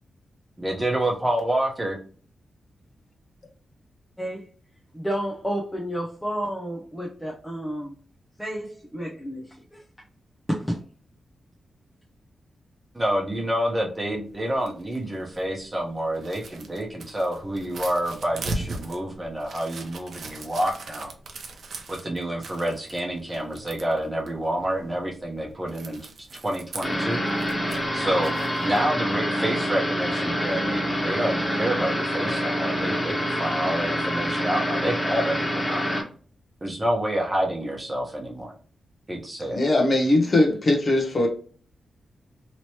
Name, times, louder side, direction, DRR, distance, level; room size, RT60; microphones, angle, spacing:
voice 1, 0.6-2.0 12.9-21.1 21.9-26.0 26.4-27.2 27.9-28.3 28.6-36.0 36.6-38.5 39.1-39.6, right 1 dB, 20° right, 0 dB, 1.0 m, -28 dB
voice 2, 4.2-4.5 4.9-7.9 8.4-9.8 10.5-10.8, equal, 5° left, -3 dB, 0.7 m, -31 dB
sound 1, 14.3-28.8, right 3 dB, 70° right, 0.6 m, -39 dB
sound 2, 26.8-36.0, equal, 20° left, 1.3 m, -26 dB
voice 3, 39.5-41.3, left 2 dB, 45° left, 1 dB, 0.9 m, -20 dB
3.0 x 3.0 x 3.0 m, 0.42 s
cardioid pair, 80°, 0 cm